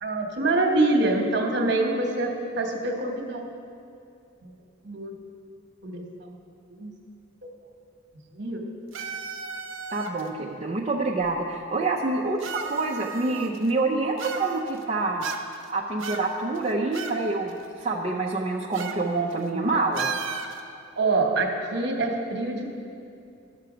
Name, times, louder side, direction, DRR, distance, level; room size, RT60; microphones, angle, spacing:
voice 1, 0.0-2.3 2.6-3.4 4.4-4.5 4.8-5.1 5.8-6.4 6.7-6.9 8.3-8.6 19.5-19.7 21.0-22.7, right 2 dB, 60° right, 2 dB, 1.2 m, -25 dB
sound 1, 8.9-10.3 11.2-11.3 12.4-13.7 14.2-14.8 15.2-15.7 16.0-17.2 17.5-17.6 18.7-19.0 19.3-19.5 19.9-20.6, right 6 dB, 85° right, 0.7 m, -35 dB
voice 2, 9.9-15.2 15.7-20.1, right 3 dB, 35° right, -3 dB, 0.5 m, -27 dB
11.5 x 6.7 x 5.0 m, 2.5 s
head